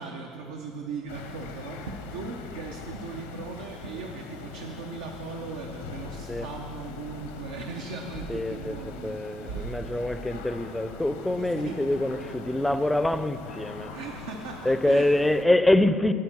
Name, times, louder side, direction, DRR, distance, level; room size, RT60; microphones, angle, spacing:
voice 1, 0.0-9.8 10.3-10.4 11.3-11.9 13.9-15.2, right 4 dB, 80° right, 0.6 m, -38 dB
sound 1, 1.1-15.4, left 4 dB, 85° left, 0.9 m, -42 dB
voice 2, 8.3-8.7 9.0-13.9 14.7-16.1, left 1 dB, 5° left, 0.5 m, -25 dB
9.1 x 8.7 x 6.0 m
hypercardioid pair, 75°, 0 cm